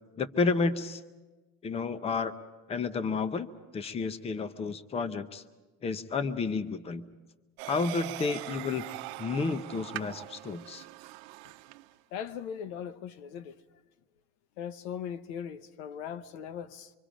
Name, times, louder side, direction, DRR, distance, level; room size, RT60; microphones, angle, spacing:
voice 1, 0.2-1.0 1.6-2.3 2.7-5.4 5.8-7.0 7.6-8.8 9.2-10.8, left 4 dB, 20° left, 0.7 m, -31 dB
sound 1, 7.6-11.9, right 19 dB, 90° right, 0.8 m, -42 dB
voice 2, 12.1-13.5 14.6-16.9, left 8 dB, 90° left, 1.0 m, -39 dB
25.0 x 25.0 x 5.1 m
cardioid pair, 155°, 32 cm